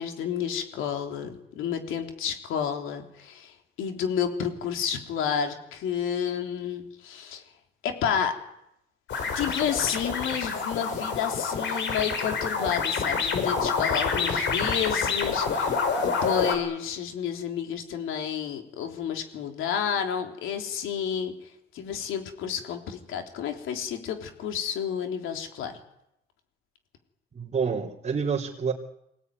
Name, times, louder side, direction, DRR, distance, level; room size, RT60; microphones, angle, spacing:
voice 1, 0.0-7.4 7.8-8.3 9.3-21.3 21.7-25.8, left 8 dB, 90° left, 4 dB, 3.6 m, -30 dB
sound 1, 9.1-16.6, left 5 dB, 70° left, 5.6 m, -27 dB
voice 2, 27.3-28.7, right 6 dB, 35° right, -6 dB, 3.4 m, -28 dB
24.0 x 18.5 x 9.5 m, 0.82 s
cardioid pair, 90°, 20 cm